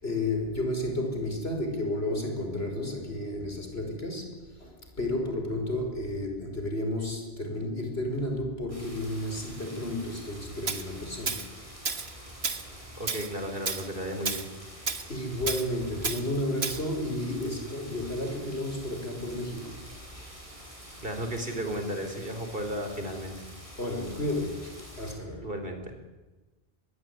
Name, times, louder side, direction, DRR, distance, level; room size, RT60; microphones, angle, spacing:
voice 1, 0.0-4.3 4.6-11.5 15.1-19.8 23.8-25.5, left 1 dB, 80° left, 4 dB, 6.0 m, -32 dB
sound 1, 8.7-25.1, equal, 30° right, 7.3 m, -47 dB
Tools, 10.7-10.8 11.3-11.5 11.9-12.1 12.4-12.6 13.1-13.3 13.7-13.9 14.3-14.5 14.9-15.0 15.5-15.7 16.0-16.2 16.6-16.8, right 4 dB, 85° right, 1.8 m, -31 dB
voice 2, 13.0-14.5 21.0-23.3 25.4-25.9, equal, 60° right, 6 dB, 4.7 m, -34 dB
25.0 x 21.0 x 9.8 m, 1.2 s
omnidirectional pair, 1.0 m